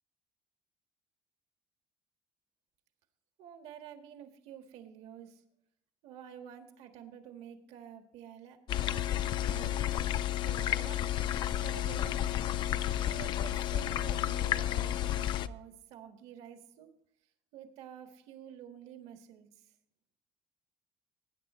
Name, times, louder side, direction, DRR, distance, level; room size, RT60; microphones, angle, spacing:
voice 1, 3.4-5.4 6.0-8.6 9.4-10.0 10.4-11.1 11.6-12.5 13.0-16.9 17.5-19.7, right 9 dB, 70° right, 5 dB, 1.7 m, -49 dB
sound 1, 8.7-15.5, left 12 dB, 45° left, 0.5 m, -31 dB
20.0 x 9.8 x 3.1 m, 0.71 s
cardioid pair, 175°, 11 cm